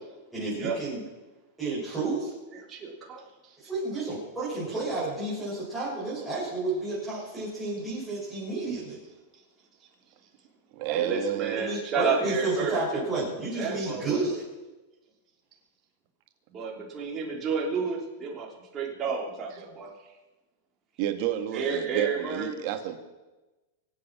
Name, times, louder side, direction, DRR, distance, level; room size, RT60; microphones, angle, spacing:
voice 1, 0.3-1.1 1.6-2.3 3.6-9.0 11.5-14.4, right 2 dB, 5° right, -10 dB, 6.6 m, -31 dB
voice 2, 2.7-3.2 10.9-13.1 13.5-14.4 16.5-18.5 18.7-19.9 21.5-22.5, right 4 dB, 25° right, -1 dB, 3.3 m, -31 dB
voice 3, 10.7-11.7 21.0-23.0, right 11 dB, 50° right, 7 dB, 1.8 m, -30 dB
24.5 x 8.4 x 6.1 m, 1.1 s
supercardioid pair, 150°, 0 cm